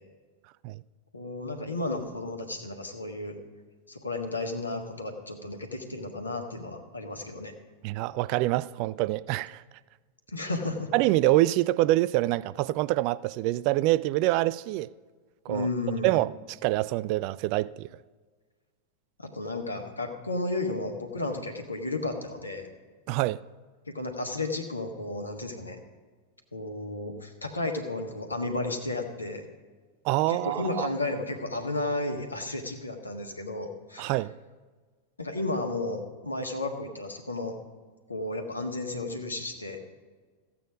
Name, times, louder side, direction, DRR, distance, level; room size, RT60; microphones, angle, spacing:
voice 1, 1.1-3.4 3.9-7.5 10.3-10.9 15.5-16.2 19.2-22.7 23.9-25.8 26.5-29.5 30.3-34.1 35.2-37.5 38.1-39.8, left 2 dB, 80° left, 1.6 m, -33 dB
voice 2, 7.8-9.6 10.9-14.9 15.5-15.7 16.0-17.9 23.1-23.4 30.0-30.9 34.0-34.3, right 17 dB, 45° right, 0.3 m, -26 dB
15.0 x 8.5 x 5.0 m
figure-of-eight pair, 90°, 0 cm